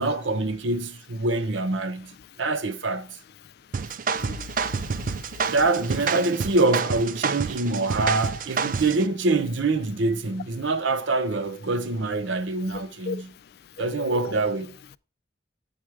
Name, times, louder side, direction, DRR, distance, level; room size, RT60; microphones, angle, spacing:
voice 1, 0.0-2.1 2.4-3.2 5.5-13.3 13.8-14.7, right 3 dB, 90° right, 0.8 m, -25 dB
sound 1, 3.7-9.1, right 5 dB, 45° right, 0.4 m, -28 dB
voice 2, 4.1-5.6 6.1-6.4 12.7-13.3 13.7-14.3, left 5 dB, 55° left, 0.3 m, -38 dB
8.9 x 4.9 x 4.6 m
head